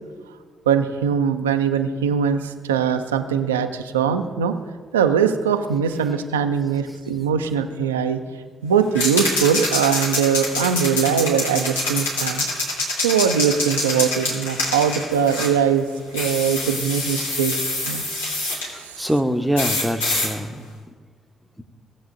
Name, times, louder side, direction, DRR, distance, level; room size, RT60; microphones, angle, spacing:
voice 1, 0.7-4.5 4.9-8.2 8.6-12.4 13.0-15.9 16.1-18.0 18.8-19.0, right 7 dB, 80° right, 7 dB, 0.5 m, -21 dB
sound 1, 9.0-15.6 16.1-18.7 19.6-20.3, left 2 dB, 85° left, 2.1 m, -25 dB
voice 2, 18.7-20.6, equal, ahead, 7 dB, 0.9 m, -24 dB
18.0 x 7.7 x 2.6 m, 1.5 s
figure-of-eight pair, 40°, 0 cm